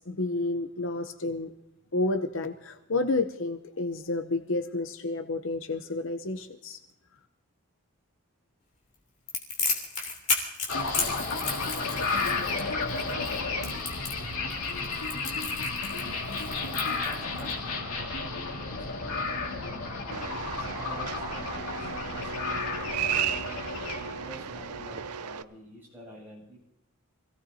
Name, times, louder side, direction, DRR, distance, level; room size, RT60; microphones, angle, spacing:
voice 1, 0.0-1.5 1.9-6.8, left 2 dB, 55° left, 7 dB, 0.7 m, -30 dB
Crackle, 9.3-17.5, left 4 dB, 30° left, 2.9 m, -33 dB
sound 1, 10.7-25.1, left 3 dB, 75° left, 2.2 m, -32 dB
voice 2, 16.5-21.5 21.8-23.1 23.9-26.7, equal, 10° right, -5 dB, 7.6 m, -48 dB
sound 2, 20.1-25.4, right 8 dB, 90° right, 0.6 m, -34 dB
26.5 x 17.0 x 2.8 m, 0.84 s
head